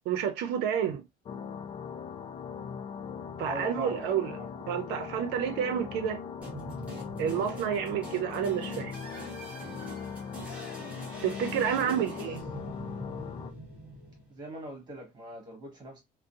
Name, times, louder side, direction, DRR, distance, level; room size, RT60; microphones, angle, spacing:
voice 1, 0.1-1.0 3.4-4.4 4.7-6.2 7.2-8.9 11.2-12.4, right 8 dB, 70° right, 0.7 m, -29 dB
sound 1, 1.3-13.5, left 6 dB, 30° left, 0.4 m, -40 dB
voice 2, 3.4-4.1 4.4-4.5 11.8-12.3 14.3-16.0, equal, 25° right, 1.5 m, -41 dB
sound 2, 6.4-14.6, equal, 10° right, 1.4 m, -44 dB
3.7 x 2.2 x 2.6 m
cardioid pair, 170°, 18 cm